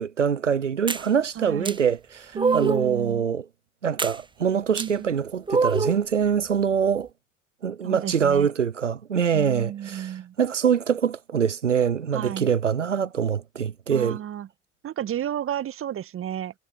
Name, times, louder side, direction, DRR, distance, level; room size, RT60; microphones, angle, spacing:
voice 1, 0.0-3.5 3.8-7.1 7.6-14.2, right 7 dB, 85° right, 0.9 m, -24 dB
sound 1, 0.9-1.1 1.7-1.8 2.4-2.9 4.0-4.2 4.8-4.9 5.5-6.0, right 4 dB, 15° right, 1.5 m, -24 dB
voice 2, 1.4-1.8 2.3-3.2 4.8-5.1 7.8-8.5 9.3-10.3 12.1-12.5 13.9-14.5 14.8-16.5, right 10 dB, 35° right, 1.8 m, -32 dB
figure-of-eight pair, 60°, 36 cm